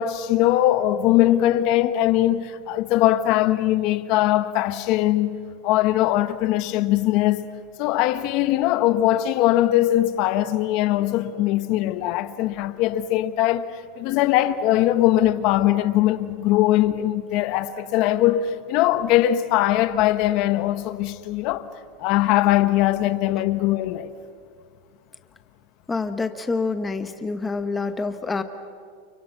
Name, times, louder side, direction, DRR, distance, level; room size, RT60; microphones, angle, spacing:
voice 1, 0.0-5.4 5.6-7.5 7.8-13.7 14.0-21.7 22.0-24.1, left 14 dB, 40° left, 1.2 m, -21 dB
voice 2, 25.9-28.4, left 4 dB, 10° left, 1.2 m, -27 dB
30.0 x 29.5 x 6.0 m
supercardioid pair, 170°, 0 cm